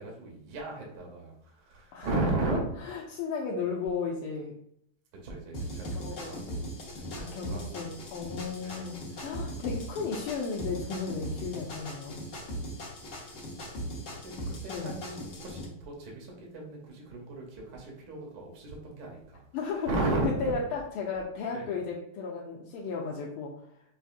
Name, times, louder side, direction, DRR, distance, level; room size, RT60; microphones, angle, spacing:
voice 1, 0.0-1.3 1.7-2.6 5.2-6.7 7.0-7.9 8.6-9.0 12.1-12.2 13.1-13.3 14.1-14.3 14.6-19.4 19.9-20.5 21.5-21.7, right 2 dB, 60° right, -1 dB, 1.1 m, -35 dB
voice 2, 2.8-4.5 5.9-6.4 7.2-12.2 14.7-14.9 19.5-19.9 20.4-23.5, left 5 dB, 85° left, -3 dB, 1.5 m, -34 dB
sound 1, 5.5-15.6, equal, 60° left, 0.8 m, -39 dB
4.7 x 2.6 x 2.4 m, 0.70 s
omnidirectional pair, 2.4 m